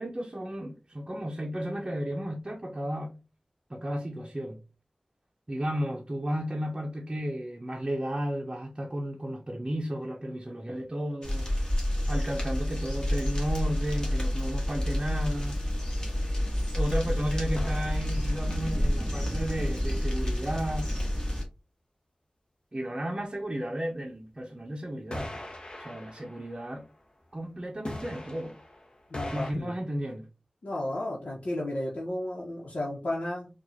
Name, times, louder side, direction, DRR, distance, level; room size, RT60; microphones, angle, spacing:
voice 1, 0.0-3.2 3.7-4.6 5.5-11.5 12.1-15.6 16.7-20.9 22.7-25.3 25.8-26.9 27.3-28.6 29.3-30.3, equal, 35° right, 0.6 m, -33 dB
sound 1, 11.2-21.4, left 1 dB, 35° left, 1.5 m, -29 dB
sound 2, 13.4-14.4 17.6-18.7 25.1-27.4 27.8-29.5, left 1 dB, 50° left, 0.9 m, -42 dB
voice 2, 29.1-29.7 30.6-33.5, left 1 dB, 85° left, 0.9 m, -33 dB
4.5 x 2.4 x 2.7 m
wide cardioid pair, 75°, 2 cm